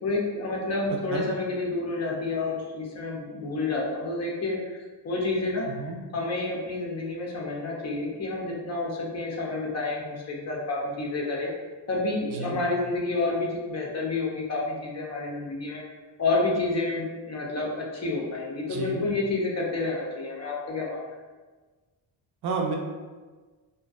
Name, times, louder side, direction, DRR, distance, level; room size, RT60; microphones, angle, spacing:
voice 1, 0.0-11.5 11.9-15.8 16.2-21.0, left 3 dB, 40° left, -2 dB, 0.5 m, -29 dB
voice 2, 5.7-6.0 12.3-12.6 18.7-19.1 22.4-22.8, right 4 dB, 70° right, 0 dB, 0.5 m, -31 dB
2.4 x 2.1 x 2.4 m, 1.3 s
cardioid pair, 110°, 42 cm